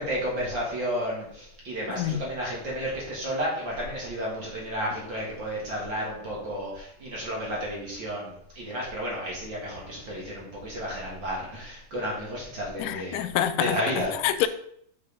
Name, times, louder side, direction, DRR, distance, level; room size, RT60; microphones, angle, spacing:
voice 1, 0.0-13.2 13.6-14.1, equal, 45° right, 2.0 m, -32 dB
voice 2, 1.9-2.2 12.8-13.8 14.2-14.5, left 12 dB, 85° left, 2.1 m, -26 dB
7.0 x 4.8 x 4.7 m
omnidirectional pair, 3.6 m